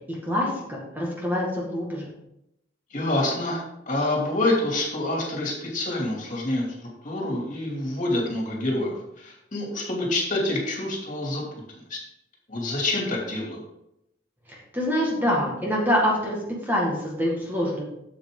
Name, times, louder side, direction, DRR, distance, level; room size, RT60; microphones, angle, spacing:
voice 1, 0.1-2.1 14.5-16.4 16.7-17.8, equal, 10° right, -3 dB, 1.8 m, -25 dB
voice 2, 2.9-11.4 11.7-12.0 12.5-13.6, left 1 dB, 40° left, -1 dB, 2.7 m, -27 dB
8.7 x 7.8 x 3.8 m, 0.83 s
head